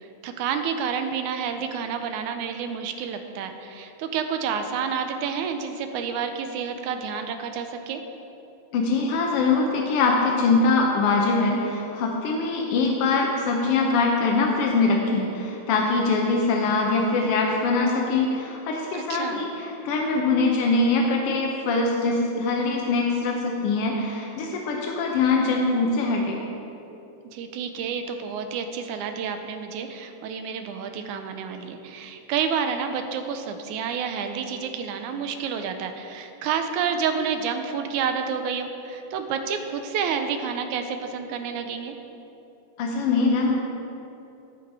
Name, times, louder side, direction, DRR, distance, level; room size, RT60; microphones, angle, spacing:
voice 1, 0.0-8.0 18.9-19.5 27.3-41.9, right 6 dB, 80° right, 7 dB, 2.1 m, -29 dB
voice 2, 8.7-26.4 42.8-43.5, left 3 dB, 70° left, 0 dB, 1.4 m, -23 dB
16.0 x 5.7 x 4.7 m, 2.9 s
omnidirectional pair, 3.5 m